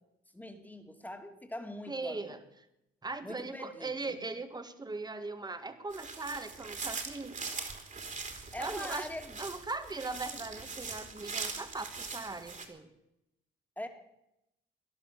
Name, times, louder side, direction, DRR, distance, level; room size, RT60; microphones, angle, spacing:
voice 1, 0.3-2.3 3.2-4.2 8.5-9.4 13.8-13.9, left 1 dB, 10° left, 5 dB, 2.5 m, -42 dB
voice 2, 1.9-2.4 3.0-7.4 8.6-9.1 9.4-12.9, right 3 dB, 20° right, 9 dB, 1.8 m, -39 dB
sound 1, 5.9-12.7, right 4 dB, 40° right, 3.0 m, -41 dB
18.0 x 11.5 x 6.8 m, 0.84 s
cardioid pair, 90°, 20 cm